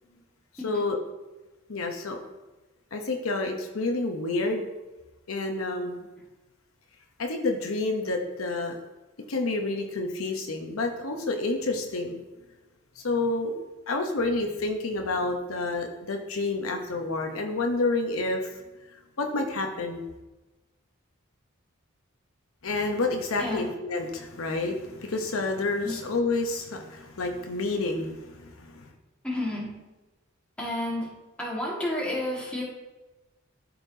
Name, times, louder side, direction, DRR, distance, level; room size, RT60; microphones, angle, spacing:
voice 1, 0.6-1.0 1.7-2.2 2.9-4.7 5.3-6.1 7.2-8.8 9.3-12.2 13.0-13.5 13.9-18.5 19.2-20.1 22.6-28.9, left 3 dB, 85° left, 4 dB, 0.8 m, -29 dB
voice 2, 29.2-29.7 30.6-31.1 31.4-32.6, left 1 dB, 5° left, -5 dB, 1.7 m, -31 dB
12.0 x 4.3 x 2.7 m, 1.1 s
head